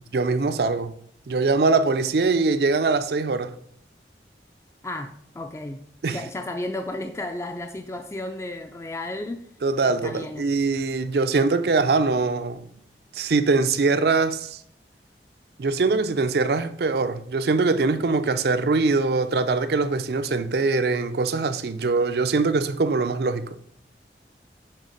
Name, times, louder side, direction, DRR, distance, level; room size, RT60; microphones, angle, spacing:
voice 1, 0.1-0.9 1.3-3.6 6.0-6.2 9.6-12.7 13.1-14.6 15.6-23.6, right 3 dB, 65° right, 0.4 m, -22 dB
voice 2, 4.8-5.8 6.1-9.4 10.0-10.5, left 1 dB, 15° left, 0.3 m, -33 dB
6.5 x 3.7 x 5.1 m
head